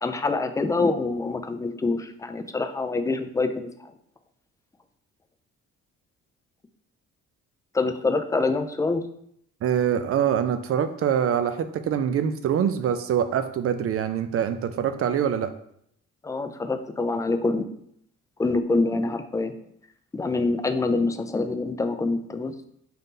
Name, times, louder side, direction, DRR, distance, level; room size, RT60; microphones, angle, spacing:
voice 1, 0.0-3.9 7.7-9.0 16.2-17.6 18.4-19.5 20.1-22.7, left 3 dB, 10° left, 8 dB, 0.3 m, -25 dB
voice 2, 9.6-15.5, right 8 dB, 50° right, 10 dB, 0.4 m, -24 dB
3.8 x 2.8 x 3.7 m, 0.71 s
cardioid pair, 90°, 30 cm